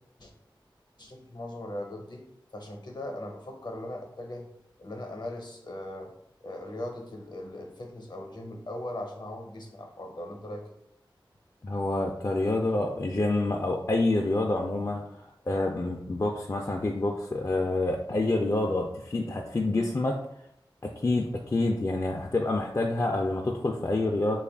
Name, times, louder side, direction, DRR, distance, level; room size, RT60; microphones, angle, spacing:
voice 1, 1.0-2.2 2.5-4.5 4.8-6.1 6.4-10.6, left 1 dB, 60° left, 3 dB, 0.7 m, -39 dB
voice 2, 11.6-20.2 20.8-24.4, left 2 dB, 35° left, 0 dB, 0.3 m, -27 dB
3.6 x 2.4 x 3.4 m, 0.76 s
wide cardioid pair, 60°, 9 cm